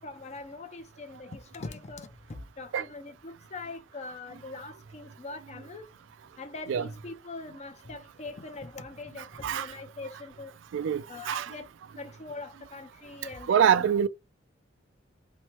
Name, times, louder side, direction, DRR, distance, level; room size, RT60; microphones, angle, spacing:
voice 1, 0.0-5.9 6.4-10.6 11.1-13.9, left 3 dB, 35° left, 0.6 m, -42 dB
voice 2, 10.7-11.5 13.5-14.1, right 8 dB, 80° right, 0.3 m, -24 dB
3.0 x 2.1 x 2.9 m
head